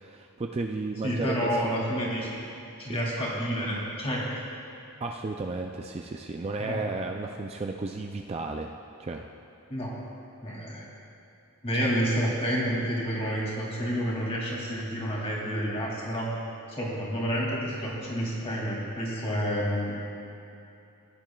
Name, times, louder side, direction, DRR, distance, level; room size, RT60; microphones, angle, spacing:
voice 1, 0.0-1.6 1.9-2.3 2.9-3.0 5.0-8.7 9.0-9.2 11.7-11.9, right 3 dB, 25° right, 2 dB, 0.3 m, -34 dB
voice 2, 1.0-2.3 2.8-4.3 6.6-6.8 9.7-9.9 10.4-10.8 11.6-16.3 16.7-19.9, equal, 25° left, -4 dB, 2.2 m, -29 dB
16.0 x 10.5 x 2.3 m, 2.8 s
head